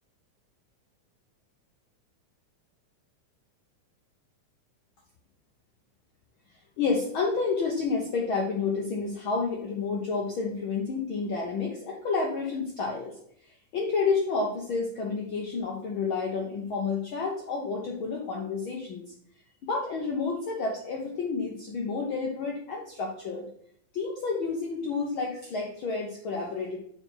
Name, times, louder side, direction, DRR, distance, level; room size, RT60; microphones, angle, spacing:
voice 1, 6.8-13.2 13.7-19.0 19.6-23.5 23.9-26.8, left 4 dB, 85° left, -1 dB, 1.1 m, -30 dB
5.3 x 4.5 x 5.7 m, 0.68 s
omnidirectional pair, 3.6 m